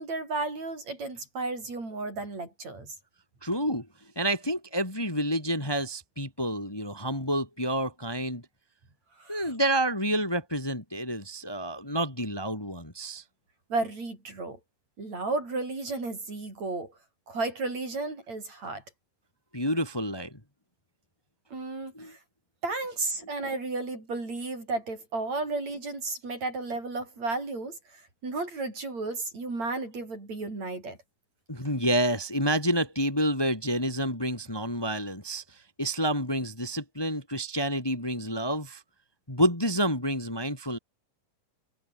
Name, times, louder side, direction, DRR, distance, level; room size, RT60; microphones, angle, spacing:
voice 1, 0.0-3.0 9.2-9.5 13.7-14.6 15.0-16.9 17.3-18.8 21.5-22.2 22.6-31.0, right 3 dB, 55° right, 9.1 m, -33 dB
voice 2, 3.4-3.9 4.1-8.4 9.3-13.2 19.5-20.4 21.9-22.1 31.5-38.8 39.3-40.8, equal, 5° left, 3.4 m, -29 dB
omnidirectional pair, 3.8 m